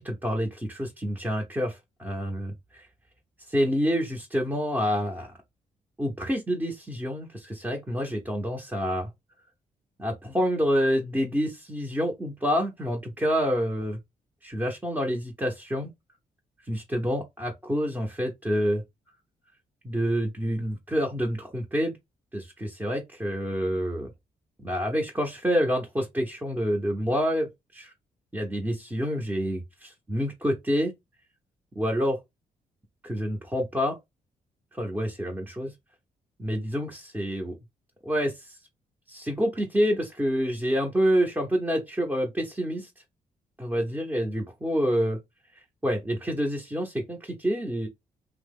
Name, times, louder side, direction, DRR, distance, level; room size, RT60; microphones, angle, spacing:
voice 1, 0.0-2.9 3.5-5.3 6.0-9.1 10.0-14.0 14.4-15.9 16.6-18.8 19.8-22.0 22.3-24.1 24.6-27.9 28.3-30.9 31.7-32.2 33.0-34.0 34.7-35.7 36.4-37.6 38.0-38.6 39.1-42.9 43.6-45.2 45.5-47.9, equal, 10° right, 0.7 m, -28 dB
2.8 x 2.1 x 3.5 m
cardioid pair, 65°, 16 cm